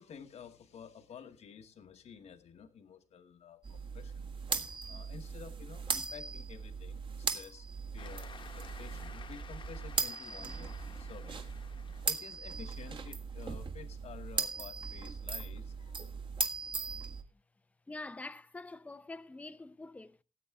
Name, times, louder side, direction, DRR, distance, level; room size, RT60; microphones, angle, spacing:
voice 1, 0.0-4.3 4.9-7.7 7.9-11.4 12.0-16.0, left 7 dB, 65° left, 1.1 m, -51 dB
sound 1, 3.6-17.2, right 5 dB, 45° right, 1.7 m, -39 dB
Cheering / Applause, 8.0-12.9, left 6 dB, 45° left, 1.1 m, -53 dB
voice 2, 17.9-20.2, left 2 dB, 10° left, 0.5 m, -45 dB
18.5 x 8.5 x 3.5 m
wide cardioid pair, 150°, 12 cm